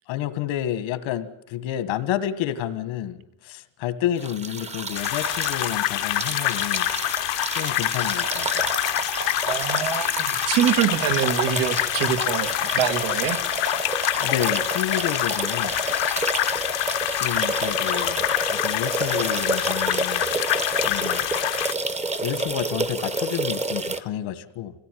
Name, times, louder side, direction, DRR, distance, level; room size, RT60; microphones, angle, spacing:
voice 1, 0.1-3.2 3.4-6.9 7.5-8.7 14.2-15.7 17.2-20.3 20.8-21.2 22.2-24.7, left 11 dB, 90° left, 12 dB, 1.7 m, -30 dB
sound 1, 4.2-24.0, right 2 dB, 15° right, 0.8 m, -29 dB
sound 2, 4.9-21.7, left 17 dB, 70° left, 0.8 m, -26 dB
voice 2, 9.4-13.4, right 10 dB, 85° right, 8 dB, 1.9 m, -25 dB
25.0 x 16.5 x 9.3 m, 0.88 s
cardioid pair, 160°, 46 cm